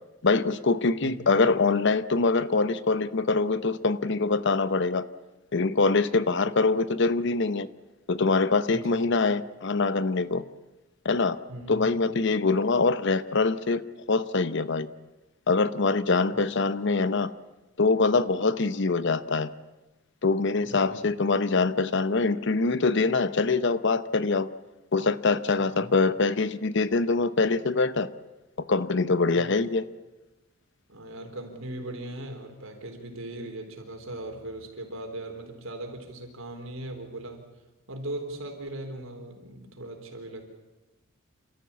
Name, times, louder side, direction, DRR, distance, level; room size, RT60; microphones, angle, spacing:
voice 1, 0.2-5.1 5.5-7.7 8.1-10.4 11.0-11.4 11.7-13.8 14.1-14.9 15.5-17.3 17.8-19.5 20.2-24.5 24.9-28.1 28.7-29.9, left 3 dB, 60° left, 15 dB, 0.8 m, -24 dB
voice 2, 8.7-9.1 11.5-12.1 16.3-16.4 20.7-21.1 25.6-25.9 29.3-29.5 30.9-37.4 37.9-40.4, right 1 dB, 75° right, 4 dB, 4.0 m, -39 dB
28.0 x 13.5 x 8.6 m, 1.1 s
head